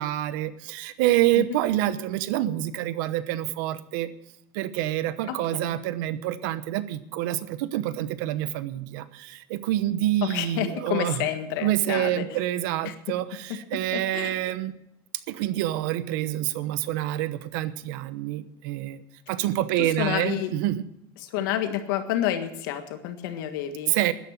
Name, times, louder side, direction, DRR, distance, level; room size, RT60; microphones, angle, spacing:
voice 1, 0.0-4.1 4.5-11.2 11.6-14.7 15.3-19.0 19.3-20.8 23.9-24.1, right 14 dB, 80° right, 14 dB, 0.9 m, -27 dB
voice 2, 5.3-5.8 10.2-12.4 12.8-12.9 13.9-14.3 19.8-20.5 21.2-23.9, left 11 dB, 90° left, 7 dB, 1.6 m, -29 dB
13.0 x 10.5 x 7.3 m, 0.78 s
cardioid pair, 170°, 11 cm